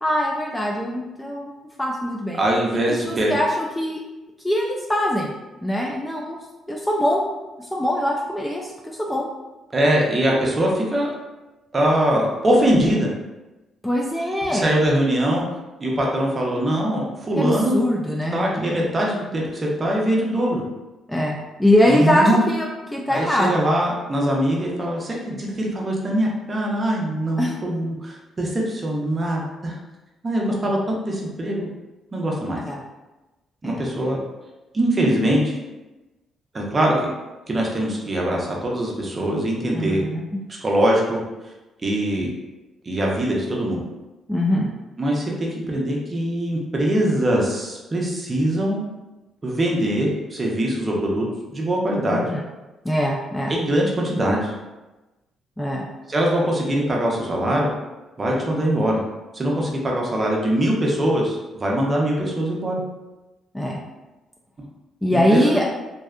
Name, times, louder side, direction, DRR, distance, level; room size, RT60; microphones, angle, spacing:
voice 1, 0.0-1.5 1.8-2.4 3.0-4.0 4.4-5.3 5.6-6.4 6.7-7.2 7.7-8.7 9.0-9.3 13.8-14.7 17.4-18.9 21.1-22.7 22.9-23.6 27.4-27.5 32.7-32.8 33.6-33.9 39.7-40.2 44.3-44.7 52.1-52.4 52.8-53.5 55.6-55.9 63.5-63.8 65.0-65.6, left 1 dB, 10° left, -2 dB, 0.3 m, -22 dB
voice 2, 2.3-3.3 9.7-11.1 11.7-13.1 14.5-15.5 15.8-17.8 18.3-20.6 21.9-22.4 23.1-29.8 30.2-30.8 31.1-31.7 32.1-32.6 33.6-34.2 34.7-35.6 36.5-36.9 37.5-40.0 40.6-41.2 41.8-42.3 42.8-43.8 45.0-48.8 49.4-51.2 51.5-52.3 53.5-54.5 56.1-57.7 58.2-59.0 59.3-62.8 65.1-65.5, right 1 dB, 30° right, -2 dB, 0.6 m, -22 dB
2.6 x 2.1 x 2.4 m, 1.1 s
cardioid pair, 90°, 0 cm